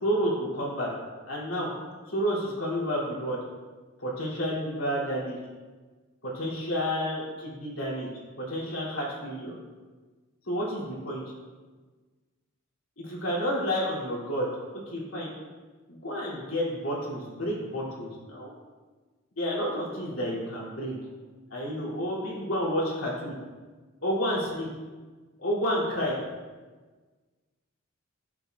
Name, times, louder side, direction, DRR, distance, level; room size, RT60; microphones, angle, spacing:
voice 1, 0.0-0.9 1.3-1.7 2.1-3.4 4.0-5.4 6.3-8.1 8.5-9.5 10.5-11.2 13.0-14.5 14.7-15.3 15.9-18.5 19.4-20.9 21.5-23.4 24.0-24.7 25.4-26.1, equal, 75° left, -5 dB, 2.5 m, -30 dB
10.0 x 7.4 x 2.3 m, 1.3 s
head